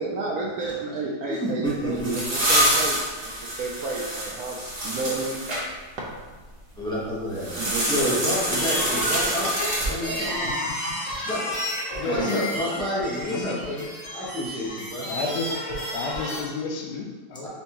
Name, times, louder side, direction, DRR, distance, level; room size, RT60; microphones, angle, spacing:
voice 1, 0.0-3.3 3.6-5.5 7.6-8.2 12.0-12.4, right 3 dB, 70° right, -2 dB, 0.9 m, -31 dB
voice 2, 1.3-2.2 6.8-7.5 7.9-10.6 11.2-11.7 12.0-15.1 17.4-17.5, equal, 5° left, -8 dB, 0.6 m, -30 dB
sound 1, 1.6-5.6 7.4-10.3, right 1 dB, 35° right, 0.7 m, -26 dB
sound 2, 5.9-6.9, right 1 dB, 85° right, 1.4 m, -42 dB
sound 3, 8.4-16.4, equal, 45° left, 1.4 m, -31 dB
voice 3, 12.0-12.5 13.3-13.6 15.1-17.5, left 4 dB, 75° left, 1 dB, 1.2 m, -31 dB
4.4 x 3.4 x 2.9 m, 1.3 s
omnidirectional pair, 1.9 m